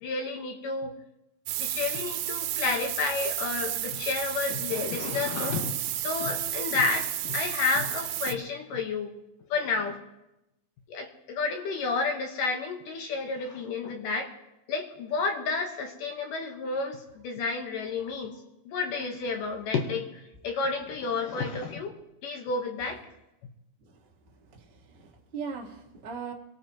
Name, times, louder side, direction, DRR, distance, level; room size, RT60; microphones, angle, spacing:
voice 1, 0.0-0.9 1.6-9.1 9.5-10.0 10.9-14.3 14.7-18.4 18.7-21.9 22.2-23.0, left 4 dB, 70° left, 3 dB, 2.7 m, -31 dB
sound 1, 1.5-8.3, right 12 dB, 85° right, 2.7 m, -32 dB
voice 2, 24.5-26.3, right 5 dB, 35° right, -1 dB, 0.9 m, -39 dB
26.0 x 18.0 x 3.0 m, 0.92 s
omnidirectional pair, 4.2 m